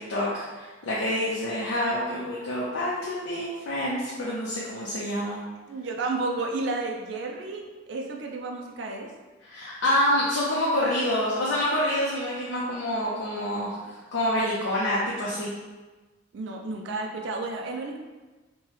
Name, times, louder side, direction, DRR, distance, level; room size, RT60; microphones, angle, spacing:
voice 1, 0.1-5.4 9.4-13.7 14.1-15.5, left 1 dB, 90° left, -6 dB, 0.6 m, -27 dB
voice 2, 5.7-9.1 16.3-18.0, right 3 dB, 65° right, 0 dB, 0.4 m, -32 dB
3.0 x 2.2 x 3.2 m, 1.2 s
head